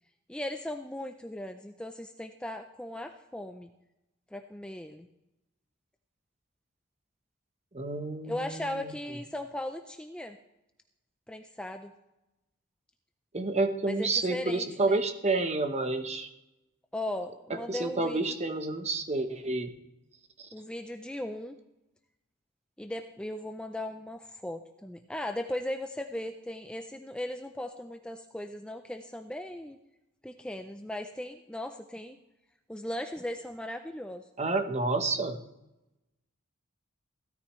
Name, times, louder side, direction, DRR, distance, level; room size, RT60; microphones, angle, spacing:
voice 1, 0.3-3.7 4.3-5.1 8.2-10.4 11.3-11.9 13.9-15.0 16.9-18.2 20.5-21.6 22.8-29.8 30.2-32.2 32.7-34.3, left 1 dB, 5° left, 6 dB, 0.4 m, -37 dB
voice 2, 7.7-8.8 13.3-16.3 17.7-19.7 20.4-20.5 34.4-35.4, right 3 dB, 30° right, 7 dB, 1.0 m, -29 dB
16.5 x 13.0 x 3.1 m, 0.95 s
head